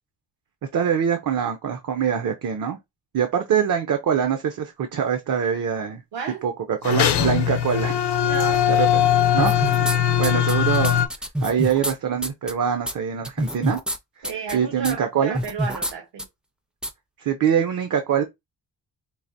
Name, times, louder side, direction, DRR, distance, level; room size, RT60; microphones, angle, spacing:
voice 1, 0.7-2.8 3.1-6.0 6.4-8.0 8.7-9.9 10.2-11.0 11.4-13.8 14.2-15.4 17.2-18.2, right 8 dB, 50° right, 0.6 m, -24 dB
voice 2, 6.1-6.4 8.2-8.7 14.2-16.3, right 6 dB, 75° right, 1.2 m, -32 dB
sound 1, 6.8-11.1, left 10 dB, 70° left, 0.7 m, -20 dB
sound 2, 9.4-10.0 10.2-11.9 12.2-12.5 12.9-13.0 13.2-14.0 14.2-14.5 14.8-14.9 15.3-15.9 16.2-16.3 16.8-16.9, equal, ahead, 0.4 m, -26 dB
4.7 x 2.8 x 2.7 m
wide cardioid pair, 150°, 42 cm